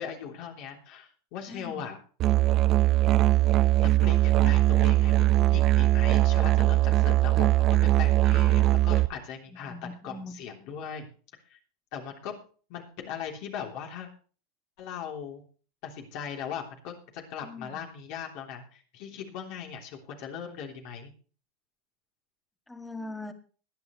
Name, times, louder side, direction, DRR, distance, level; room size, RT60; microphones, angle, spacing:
voice 1, 0.0-2.0 3.8-9.7 10.0-11.1 11.5-11.6 11.9-12.3 12.7-14.1 14.8-15.4 15.8-21.1, left 7 dB, 55° left, 1 dB, 3.2 m, -39 dB
voice 2, 1.5-1.8 9.7-10.4 17.4-17.8 22.7-23.3, left 2 dB, 5° left, 7 dB, 2.0 m, -41 dB
Musical instrument, 2.2-9.1, right 17 dB, 45° right, 0.5 m, -21 dB
20.5 x 9.6 x 3.1 m, 0.39 s
hypercardioid pair, 100°, 0 cm